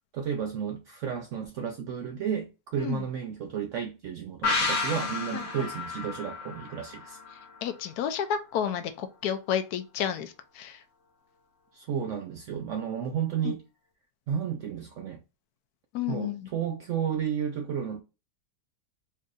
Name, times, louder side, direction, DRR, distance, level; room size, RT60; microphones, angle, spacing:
voice 1, 0.1-7.2 11.7-13.6 14.3-15.2 16.1-18.0, right 8 dB, 85° right, 0.6 m, -32 dB
sound 1, 4.4-7.9 8.2-8.3, left 3 dB, 45° left, 1.1 m, -32 dB
voice 2, 7.6-10.8 13.4-13.5 15.9-16.5, left 9 dB, 70° left, 1.0 m, -31 dB
4.4 x 2.6 x 2.4 m
omnidirectional pair, 1.9 m